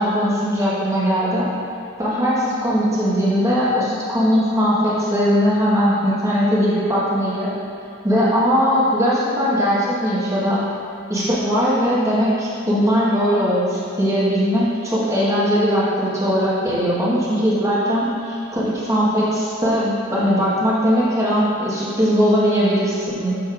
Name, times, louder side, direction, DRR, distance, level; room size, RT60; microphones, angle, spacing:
voice 1, 0.0-1.5 2.0-7.5 8.0-10.6 11.1-23.4, equal, 15° right, -8 dB, 1.3 m, -19 dB
6.5 x 6.2 x 2.5 m, 2.6 s
head